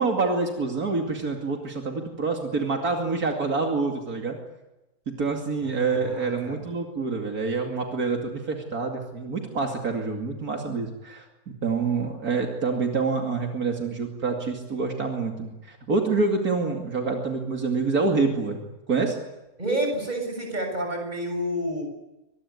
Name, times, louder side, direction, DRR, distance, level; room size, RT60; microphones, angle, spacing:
voice 1, 0.0-4.4 5.1-11.2 11.6-18.6 18.9-19.2, right 4 dB, 75° right, 2 dB, 3.0 m, -27 dB
voice 2, 5.6-6.6 19.6-21.8, right 1 dB, 30° right, 3 dB, 7.3 m, -29 dB
25.0 x 21.0 x 9.7 m, 1.0 s
omnidirectional pair, 1.6 m